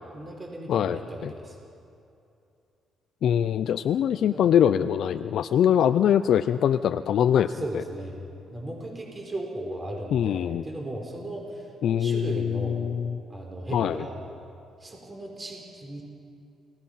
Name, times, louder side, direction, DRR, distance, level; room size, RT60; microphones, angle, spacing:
voice 1, 0.1-1.6 4.3-4.5 6.4-6.5 7.3-8.2 8.5-11.7 12.0-12.8 13.3-14.2 14.8-16.0, right 1 dB, 25° right, 1 dB, 4.3 m, -36 dB
voice 2, 0.7-1.3 3.2-7.8 10.1-10.6 11.8-13.2 13.7-14.0, left 9 dB, 70° left, 10 dB, 0.5 m, -23 dB
28.5 x 18.0 x 5.8 m, 2.6 s
cardioid pair, 90°, 0 cm